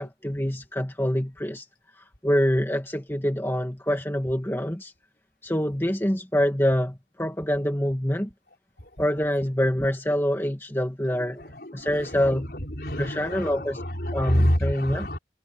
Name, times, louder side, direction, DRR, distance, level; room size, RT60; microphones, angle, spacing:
voice 1, 0.0-1.7 2.0-4.9 5.4-8.3 9.0-11.4 11.7-12.5 13.0-13.8 14.1-15.1, equal, 15° left, 2.0 m, -25 dB
voice 2, 11.4-15.2, equal, 60° left, 4.9 m, -28 dB
head